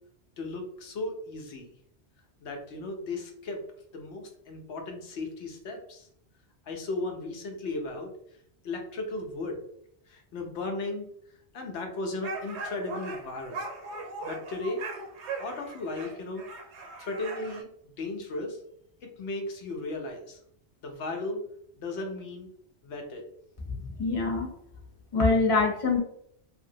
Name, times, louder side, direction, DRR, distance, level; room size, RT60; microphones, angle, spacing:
voice 1, 0.4-1.7 2.4-3.6 3.9-6.1 6.7-8.1 8.6-9.6 10.1-11.0 11.5-13.6 14.2-14.8 15.4-16.4 17.0-17.7 18.0-18.6 19.2-20.4 20.8-21.4 21.8-22.5 22.8-23.2, left 2 dB, 85° left, 2 dB, 0.9 m, -35 dB
sound 1, 12.2-17.6, right 3 dB, 85° right, 0.9 m, -39 dB
voice 2, 23.8-24.5 25.1-26.0, left 3 dB, 35° left, 0 dB, 0.7 m, -24 dB
2.8 x 2.5 x 2.6 m, 0.69 s
omnidirectional pair, 1.1 m